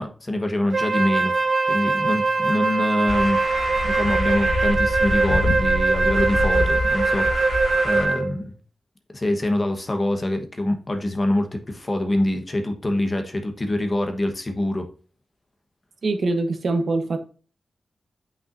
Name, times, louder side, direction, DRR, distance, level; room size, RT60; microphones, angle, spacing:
voice 1, 0.0-1.3 1.7-3.4 3.8-7.5 7.8-8.5 9.1-14.9, left 1 dB, 25° left, 1.1 m, -25 dB
Wind instrument woodwind instrument, 0.7-8.3, right 3 dB, 35° right, 0.7 m, -22 dB
sound 1, 3.1-8.1, left 2 dB, 65° left, 1.1 m, -27 dB
voice 2, 16.0-17.2, right 3 dB, 55° right, 1.1 m, -23 dB
8.5 x 5.7 x 2.6 m
wide cardioid pair, 145°, 0 cm